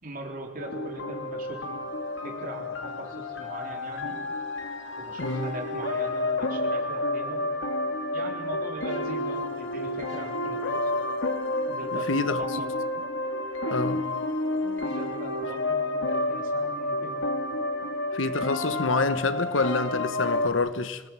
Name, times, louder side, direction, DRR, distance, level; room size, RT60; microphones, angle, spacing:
voice 1, 0.0-1.6 2.2-4.1 5.0-7.5 8.1-10.9 11.7-12.7 14.6-17.2, right 1 dB, 45° right, 4.2 m, -40 dB
sound 1, 0.6-20.5, left 2 dB, 70° left, 2.6 m, -30 dB
voice 2, 5.2-5.5 11.9-12.4 13.7-14.0 18.1-21.0, left 3 dB, 85° left, 1.2 m, -27 dB
26.0 x 18.5 x 8.9 m
head